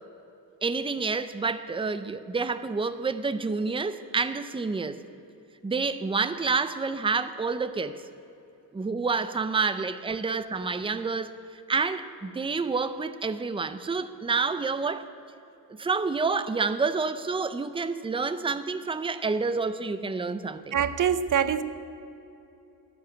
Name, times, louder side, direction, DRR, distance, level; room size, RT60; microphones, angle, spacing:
voice 1, 0.6-5.0 5.6-8.0 8.7-15.1 15.8-20.8, right 4 dB, 15° right, 11 dB, 0.5 m, -28 dB
voice 2, 20.7-21.6, right 8 dB, 55° right, 13 dB, 0.8 m, -24 dB
15.0 x 10.5 x 8.7 m, 2.9 s
wide cardioid pair, 160°, 38 cm